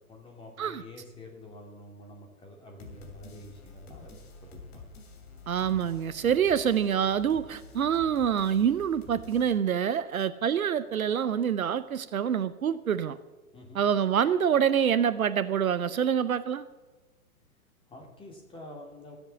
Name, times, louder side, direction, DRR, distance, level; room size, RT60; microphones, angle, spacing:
voice 1, 0.1-4.9 13.5-13.8 17.9-19.2, left 1 dB, 10° left, 1 dB, 2.9 m, -48 dB
sound 1, 2.8-9.6, left 3 dB, 45° left, 2.7 m, -49 dB
voice 2, 5.5-13.2 13.7-16.6, right 8 dB, 70° right, 15 dB, 0.8 m, -26 dB
15.5 x 7.5 x 7.1 m, 1.2 s
figure-of-eight pair, 115°, 44 cm